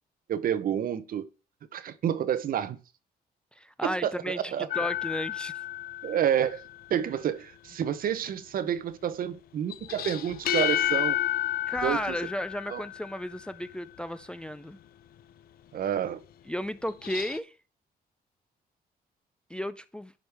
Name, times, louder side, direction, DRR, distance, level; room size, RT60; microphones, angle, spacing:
voice 1, 0.3-1.2 1.7-2.8 3.8-4.7 6.0-11.2 11.8-12.0 12.7-12.8 15.7-16.2, right 9 dB, 65° right, 0.8 m, -29 dB
voice 2, 3.5-5.6 11.7-14.8 16.5-17.6 19.5-20.1, equal, 5° left, 0.3 m, -34 dB
sound 1, 4.7-6.7 9.7-13.3 16.9-17.4, left 14 dB, 70° left, 0.5 m, -31 dB
10.5 x 5.2 x 3.4 m
cardioid pair, 110°, 16 cm